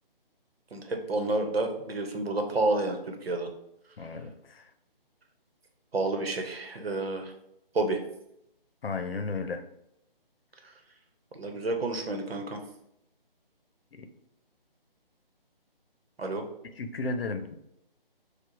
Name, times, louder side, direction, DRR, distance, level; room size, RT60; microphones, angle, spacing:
voice 1, 0.7-3.5 5.9-7.3 7.7-8.0 11.3-12.6 16.2-16.4, right 2 dB, 90° right, 4 dB, 1.0 m, -29 dB
voice 2, 4.0-4.7 8.8-9.6 13.9-14.1 16.8-17.6, left 3 dB, 75° left, 7 dB, 0.7 m, -34 dB
6.7 x 2.3 x 3.2 m, 0.80 s
hypercardioid pair, 170°, 29 cm